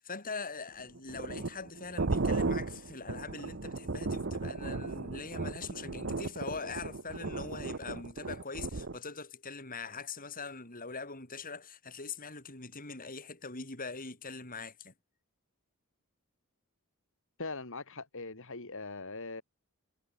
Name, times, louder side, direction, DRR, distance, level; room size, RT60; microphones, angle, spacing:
voice 1, 0.0-14.9, left 4 dB, 40° left, 6.4 m, -42 dB
sound 1, 0.8-9.0, right 3 dB, 55° right, 1.0 m, -35 dB
voice 2, 17.4-19.4, left 3 dB, 65° left, 3.2 m, -41 dB
head